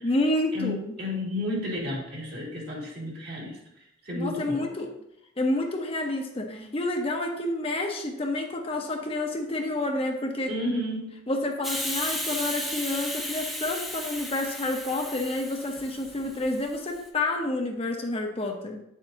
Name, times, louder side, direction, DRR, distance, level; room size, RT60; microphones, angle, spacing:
voice 1, 0.0-1.0 4.2-4.9 5.4-10.5 11.3-18.8, left 2 dB, 30° left, 2 dB, 0.8 m, -29 dB
voice 2, 0.5-3.5 4.1-4.7 10.5-11.1, left 1 dB, 55° right, -4 dB, 2.8 m, -32 dB
Hiss, 11.6-17.0, left 1 dB, ahead, 0.8 m, -34 dB
9.4 x 7.2 x 2.7 m, 0.81 s
head